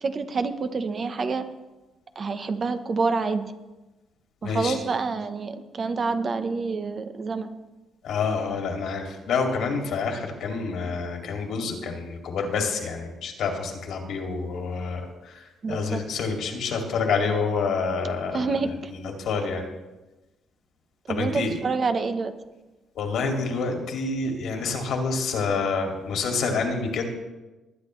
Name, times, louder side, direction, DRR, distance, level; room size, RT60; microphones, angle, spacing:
voice 1, 0.0-1.4 2.2-3.5 4.4-7.5 15.6-16.0 18.3-18.9 21.1-22.3, right 4 dB, 40° right, 9 dB, 0.9 m, -27 dB
voice 2, 4.4-4.8 8.0-15.4 15.7-19.7 21.1-21.6 23.0-27.1, left 4 dB, 75° left, 2 dB, 2.3 m, -28 dB
20.0 x 9.8 x 3.2 m, 1.1 s
cardioid pair, 120°, 0 cm